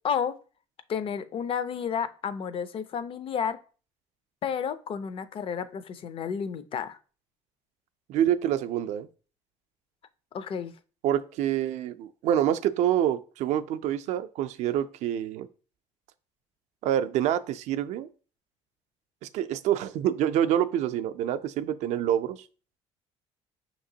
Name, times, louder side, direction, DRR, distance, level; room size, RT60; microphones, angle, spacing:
voice 1, 0.0-0.3 0.9-3.6 4.4-7.0 10.3-10.7, left 7 dB, 50° left, 0.5 m, -31 dB
voice 2, 8.1-9.1 11.0-15.5 16.8-18.1 19.2-22.4, right 10 dB, 75° right, 0.4 m, -27 dB
5.7 x 2.9 x 2.7 m
cardioid pair, 90°, 12 cm